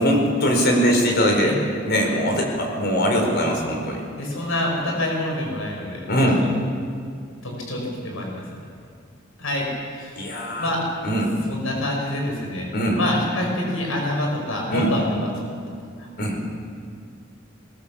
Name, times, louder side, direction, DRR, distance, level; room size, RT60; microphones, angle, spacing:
voice 1, 0.0-4.0 6.1-6.4 10.2-10.7 11.0-11.3 12.7-13.0 14.7-14.9 16.2-16.4, equal, 55° left, 2 dB, 4.9 m, -21 dB
voice 2, 4.2-6.3 7.4-8.4 9.4-10.2 10.6-10.8 11.5-15.6 16.0-16.1, left 1 dB, 90° left, 0 dB, 5.5 m, -27 dB
22.5 x 18.5 x 7.2 m, 2.2 s
head